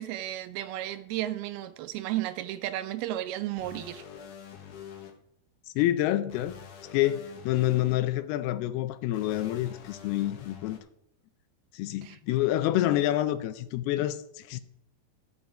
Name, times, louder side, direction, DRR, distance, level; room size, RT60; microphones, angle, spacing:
voice 1, 0.0-4.0 12.0-12.2, right 14 dB, 80° right, 2.4 m, -33 dB
sound 1, 3.6-5.1 6.3-7.9 9.1-10.8, left 8 dB, 65° left, 2.2 m, -46 dB
voice 2, 5.8-6.5 6.9-10.8 11.7-14.6, left 14 dB, 80° left, 2.5 m, -27 dB
12.0 x 7.1 x 4.9 m
omnidirectional pair, 4.6 m